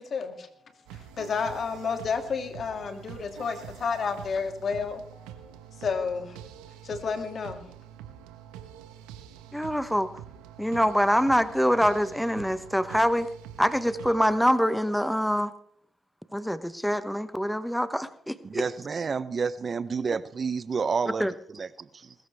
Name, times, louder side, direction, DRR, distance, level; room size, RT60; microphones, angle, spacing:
voice 1, 0.0-6.4 6.8-7.6, left 5 dB, 60° left, 6 dB, 2.5 m, -31 dB
sound 1, 0.9-14.4, right 10 dB, 90° right, 1.3 m, -46 dB
voice 2, 9.5-10.1 10.6-13.3 13.6-15.5 16.3-18.6 21.2-21.3, equal, ahead, 13 dB, 1.0 m, -25 dB
voice 3, 18.4-22.1, right 5 dB, 50° right, 16 dB, 0.8 m, -30 dB
20.5 x 13.5 x 3.5 m, 0.66 s
supercardioid pair, 50°, 0 cm